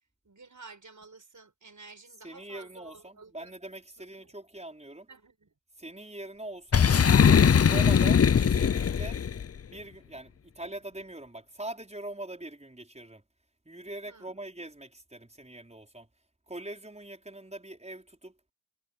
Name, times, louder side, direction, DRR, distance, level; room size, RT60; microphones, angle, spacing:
voice 1, 0.2-3.5 4.0-4.3 5.1-5.5 14.1-14.3, right 4 dB, 40° right, 6.5 m, -52 dB
voice 2, 2.2-5.1 5.8-6.9 7.6-9.2 9.7-13.2 13.6-16.1 16.5-18.4, right 1 dB, 15° right, 5.0 m, -42 dB
Boom, 6.7-9.4, left 7 dB, 30° left, 0.5 m, -21 dB
wide cardioid pair, 95°, 47 cm